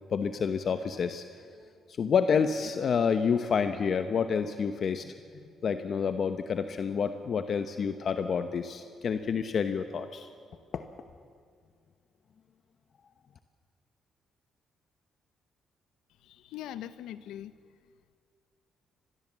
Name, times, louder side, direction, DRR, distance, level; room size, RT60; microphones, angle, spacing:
voice 1, 0.1-1.2 2.0-5.1 5.6-10.3 10.7-10.8, left 6 dB, 55° left, 8 dB, 1.0 m, -28 dB
voice 2, 16.2-17.5, left 12 dB, 90° left, 13 dB, 0.9 m, -41 dB
24.0 x 20.0 x 7.5 m, 2.1 s
cardioid pair, 90°, 0 cm